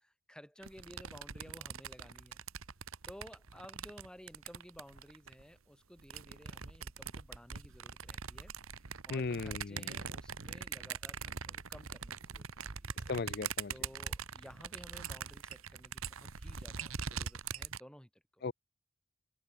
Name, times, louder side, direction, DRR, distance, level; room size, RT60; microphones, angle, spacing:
voice 1, 0.0-2.4 3.0-13.0 13.7-18.4, equal, 5° left, 3.5 m, -55 dB
sound 1, 0.6-5.4 6.0-17.8, right 6 dB, 80° right, 1.3 m, -43 dB
voice 2, 9.1-9.9 13.1-13.7 18.4-18.5, left 4 dB, 50° left, 0.5 m, -37 dB
head